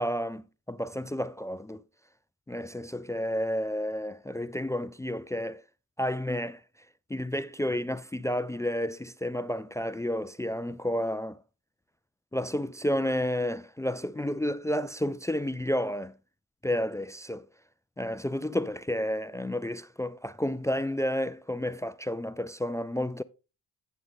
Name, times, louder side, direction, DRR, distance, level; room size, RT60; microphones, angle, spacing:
voice 1, 0.0-1.8 2.5-5.6 6.0-6.6 7.1-11.4 12.3-16.1 16.6-17.4 18.0-23.2, left 1 dB, 10° left, 0.3 m, -31 dB
10.0 x 6.5 x 3.6 m
cardioid pair, 75°, 37 cm